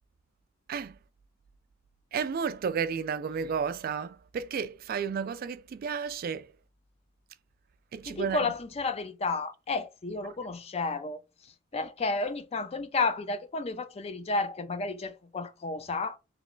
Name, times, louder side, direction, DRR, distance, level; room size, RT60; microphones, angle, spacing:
voice 1, 2.1-6.5 7.9-8.5, right 6 dB, 45° right, 0.3 m, -32 dB
voice 2, 8.0-11.2 11.7-16.2, left 3 dB, 30° left, 0.4 m, -32 dB
3.1 x 3.0 x 3.8 m
head